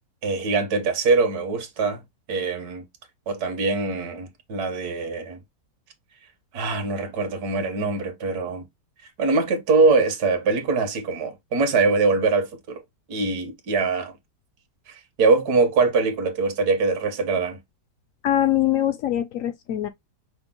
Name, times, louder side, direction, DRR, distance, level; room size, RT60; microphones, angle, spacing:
voice 1, 0.2-2.0 2.3-2.8 3.3-5.4 6.5-8.6 9.2-12.8 13.1-14.1 14.9-17.6, right 4 dB, 70° right, 1.4 m, -23 dB
voice 2, 18.2-19.9, left 12 dB, 70° left, 0.8 m, -23 dB
5.8 x 2.1 x 3.6 m
omnidirectional pair, 1.8 m